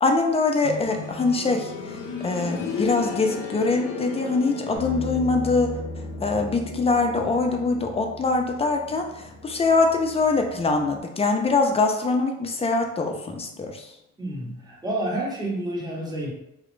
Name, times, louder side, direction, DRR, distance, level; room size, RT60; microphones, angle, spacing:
voice 1, 0.0-5.7 6.2-13.9, left 3 dB, 20° left, 3 dB, 0.4 m, -23 dB
sound 1, 0.6-11.4 11.7-11.8 12.7-12.8, left 6 dB, 80° left, 0.5 m, -37 dB
Bass guitar, 4.8-11.0, equal, 55° right, 0.6 m, -38 dB
voice 2, 14.2-16.3, right 1 dB, 15° right, -3 dB, 0.7 m, -29 dB
2.3 x 2.0 x 3.0 m, 0.83 s
cardioid pair, 90°, 30 cm